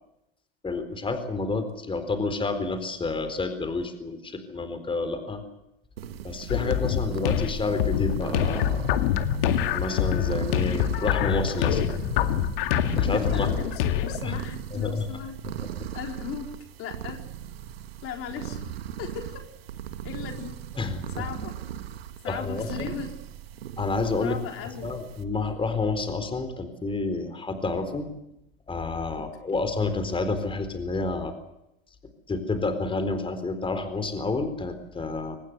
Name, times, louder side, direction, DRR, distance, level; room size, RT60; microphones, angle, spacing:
voice 1, 0.6-5.4 6.2-8.9 9.7-11.8 13.0-13.5 14.2-14.4 14.7-15.0 20.8-21.2 22.2-22.9 23.8-24.4 24.8-28.1 28.7-31.3 32.3-35.4, left 3 dB, 15° left, 10 dB, 4.2 m, -29 dB
sound 1, 6.0-25.2, right 10 dB, 80° right, 2.0 m, -38 dB
sound 2, 6.5-14.2, left 10 dB, 70° left, 2.0 m, -25 dB
voice 2, 13.1-15.4 15.9-16.5 16.8-17.2 18.0-18.7 19.0-19.4 20.0-20.5 21.1-21.6 22.2-23.1 24.2-24.9 29.1-29.6, left 8 dB, 50° left, 4 dB, 4.1 m, -37 dB
24.5 x 19.5 x 8.0 m, 0.85 s
hypercardioid pair, 95°, 29 cm